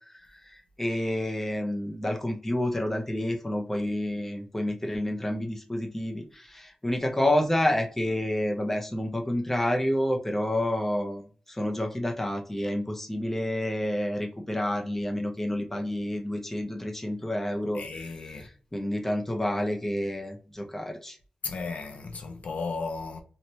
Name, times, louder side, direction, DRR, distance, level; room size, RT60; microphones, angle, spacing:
voice 1, 0.8-11.2 11.5-17.8 18.3-18.4 18.7-21.2, left 1 dB, 10° left, 0.5 m, -29 dB
voice 2, 17.7-18.5 21.4-23.2, left 4 dB, 75° left, 0.4 m, -35 dB
2.9 x 2.1 x 2.7 m
wide cardioid pair, 110°, 2 cm